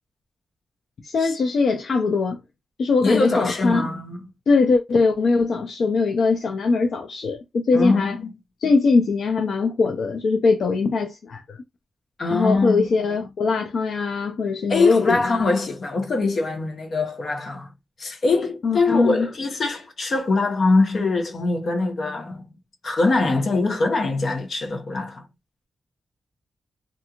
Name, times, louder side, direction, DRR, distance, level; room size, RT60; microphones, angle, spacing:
voice 1, 1.0-2.4 2.8-3.8 4.5-8.2 8.6-11.6 12.3-15.5 18.6-19.3, left 4 dB, 75° left, 0.5 m, -21 dB
voice 2, 3.0-4.2 7.7-8.3 12.2-12.9 14.7-17.7 18.0-22.5 22.8-25.2, left 3 dB, 50° left, 0.9 m, -23 dB
2.6 x 2.4 x 2.9 m
wide cardioid pair, 155°, 0 cm